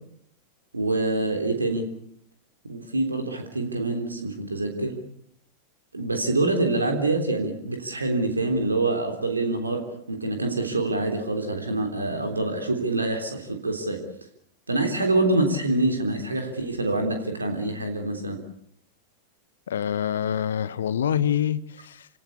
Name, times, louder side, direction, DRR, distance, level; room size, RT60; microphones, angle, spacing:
voice 1, 0.7-1.8 2.6-5.0 5.9-9.8 10.1-14.0 14.7-18.4, right 2 dB, 80° right, 4 dB, 3.5 m, -25 dB
voice 2, 19.7-22.1, left 9 dB, 65° left, 17 dB, 1.1 m, -26 dB
28.5 x 17.5 x 8.4 m, 0.70 s
figure-of-eight pair, 90°, 0 cm